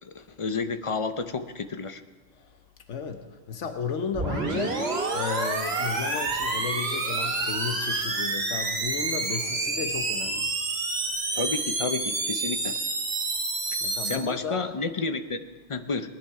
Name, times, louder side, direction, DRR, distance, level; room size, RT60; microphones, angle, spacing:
voice 1, 0.0-2.0 11.3-12.8 14.0-16.1, left 4 dB, 35° left, 10 dB, 0.5 m, -31 dB
voice 2, 2.9-4.8 5.1-10.5 13.8-14.7, left 6 dB, 85° left, 6 dB, 1.3 m, -34 dB
sound 1, 4.1-14.1, right 3 dB, 60° right, 1.9 m, -28 dB
19.5 x 10.5 x 4.8 m, 1.4 s
omnidirectional pair, 1.2 m